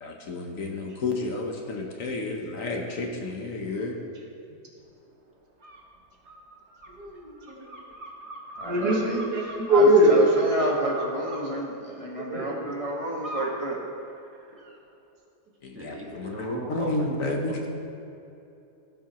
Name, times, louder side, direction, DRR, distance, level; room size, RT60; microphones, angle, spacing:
voice 1, 0.0-4.0 15.6-17.6, left 2 dB, 60° left, 2 dB, 1.3 m, -31 dB
sound 1, 5.6-5.8 6.3-11.4 13.2-13.5 14.0-14.8, right 1 dB, 45° right, 1.4 m, -41 dB
voice 2, 6.9-7.7 8.6-10.2 12.1-12.6 16.1-16.3, right 1 dB, 80° right, -2 dB, 2.1 m, -23 dB
voice 3, 8.6-9.2 9.7-13.8, right 1 dB, 25° left, -3 dB, 0.8 m, -30 dB
voice 4, 15.7-17.7, right 1 dB, 10° right, -3 dB, 1.2 m, -37 dB
16.0 x 7.3 x 3.0 m, 2.8 s
omnidirectional pair, 1.7 m